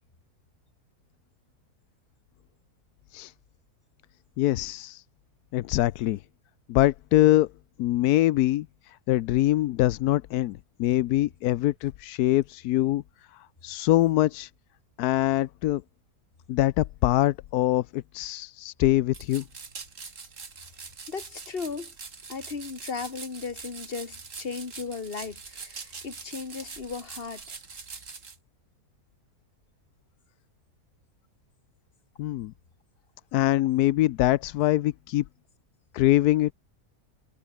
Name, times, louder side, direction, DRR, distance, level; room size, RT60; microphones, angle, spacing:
voice 1, 4.4-5.0 5.5-6.2 6.7-7.5 7.8-13.0 13.6-14.5 15.0-15.8 16.5-19.4 32.2-32.5 33.3-35.2 35.9-36.5, left 15 dB, 90° left, 1.1 m, -23 dB
sound 1, 19.1-28.4, right 5 dB, 55° right, 2.6 m, -43 dB
voice 2, 21.1-21.9 22.3-27.6, left 5 dB, 40° left, 2.1 m, -36 dB
omnidirectional pair, 1.6 m